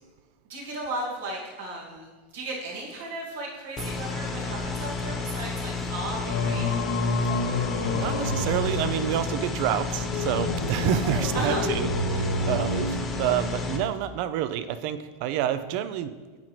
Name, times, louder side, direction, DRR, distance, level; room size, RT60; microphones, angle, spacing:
voice 1, 0.5-6.7 11.3-11.6, right 2 dB, 85° right, -3 dB, 2.2 m, -35 dB
sound 1, 3.8-13.8, left 4 dB, 25° left, 1.0 m, -32 dB
Singing, 6.2-13.6, left 2 dB, 85° left, 0.9 m, -29 dB
sound 2, 7.3-8.2 11.0-12.7, left 1 dB, ahead, 0.9 m, -43 dB
voice 2, 7.9-16.1, right 10 dB, 60° right, 12 dB, 0.4 m, -28 dB
9.0 x 5.9 x 3.2 m, 1.4 s
supercardioid pair, 130°, 0 cm